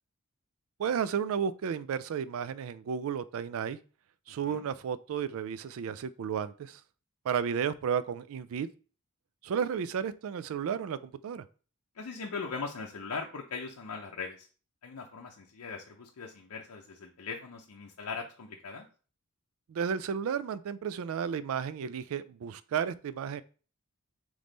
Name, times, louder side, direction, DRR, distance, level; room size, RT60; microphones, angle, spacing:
voice 1, 0.8-3.8 4.3-6.8 7.2-8.7 9.4-11.4 19.7-23.4, right 7 dB, 65° right, 0.3 m, -33 dB
voice 2, 12.0-14.5 14.8-18.9, left 4 dB, 80° left, 0.6 m, -40 dB
3.5 x 3.1 x 3.9 m
head